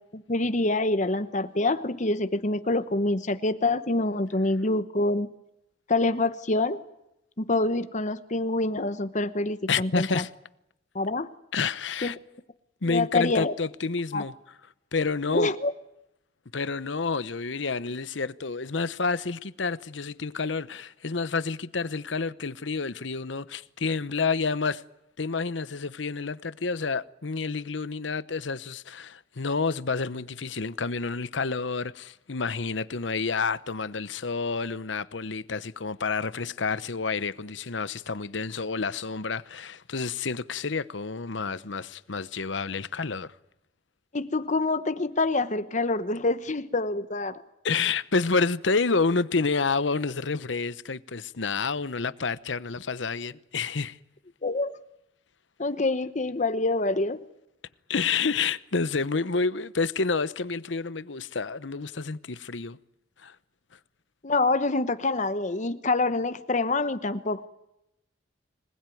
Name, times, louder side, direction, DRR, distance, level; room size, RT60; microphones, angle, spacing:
voice 1, 0.1-5.3 5.9-6.8 7.4-10.2 10.9-11.3 12.0-12.1 12.8-13.5 14.1-14.2 15.3-15.7 44.1-47.4 54.4-54.8 55.6-57.2 64.2-67.5, left 2 dB, 40° left, 1.0 m, -26 dB
voice 2, 9.7-10.3 11.5-12.2 12.8-14.3 14.9-15.5 16.5-24.8 25.2-43.3 47.6-54.0 57.9-62.8 63.2-63.3, left 4 dB, 75° left, 0.9 m, -29 dB
26.0 x 19.5 x 9.3 m
head